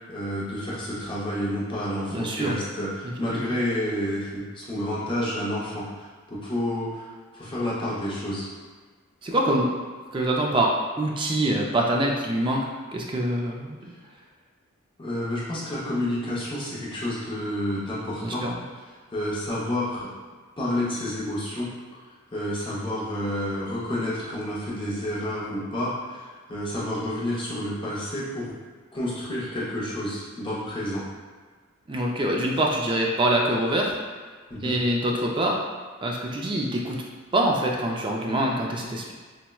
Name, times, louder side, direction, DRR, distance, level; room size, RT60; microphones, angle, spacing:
voice 1, 0.1-8.5 15.0-18.4 19.1-20.1 20.6-21.7 22.3-28.6 28.9-31.0 32.4-32.6 34.5-34.7, left 1 dB, 25° left, -8 dB, 0.6 m, -30 dB
voice 2, 2.1-2.6 3.0-3.5 9.2-9.7 10.1-13.9 18.2-18.6 31.9-33.9 34.6-35.6 36.0-37.0 37.3-39.1, right 1 dB, 25° right, -1 dB, 0.3 m, -25 dB
4.3 x 2.0 x 2.2 m, 1.5 s
head